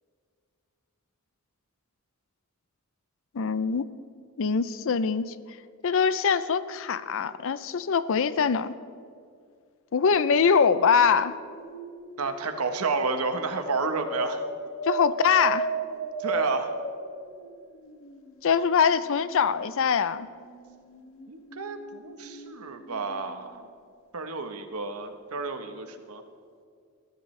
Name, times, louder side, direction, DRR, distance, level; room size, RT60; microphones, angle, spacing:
voice 1, 3.3-3.8 4.4-5.3 5.8-8.8 9.9-11.3 14.8-15.7 18.4-20.3, left 6 dB, 65° left, 15 dB, 0.5 m, -23 dB
sound 1, 10.0-18.4 18.9-23.6 25.4-25.5, right 3 dB, 85° left, 1.9 m, -37 dB
voice 2, 12.2-14.4 16.2-16.7 21.3-23.7 24.1-26.2, right 4 dB, 90° right, 7 dB, 1.1 m, -31 dB
21.5 x 13.5 x 3.3 m, 2.3 s
head